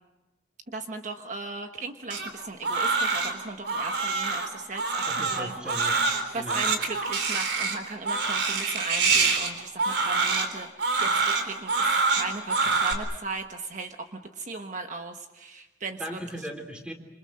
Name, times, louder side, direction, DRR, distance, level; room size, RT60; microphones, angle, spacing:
voice 1, 0.7-5.5 6.3-16.2, right 3 dB, 45° right, 5 dB, 1.2 m, -37 dB
Crying sobbing, 2.1-12.9, right 4 dB, 80° right, 3.9 m, -26 dB
voice 2, 5.1-6.0 6.3-6.6 12.6-12.7 16.0-16.9, equal, 5° right, 4 dB, 3.6 m, -38 dB
27.5 x 27.0 x 6.5 m, 1.0 s
head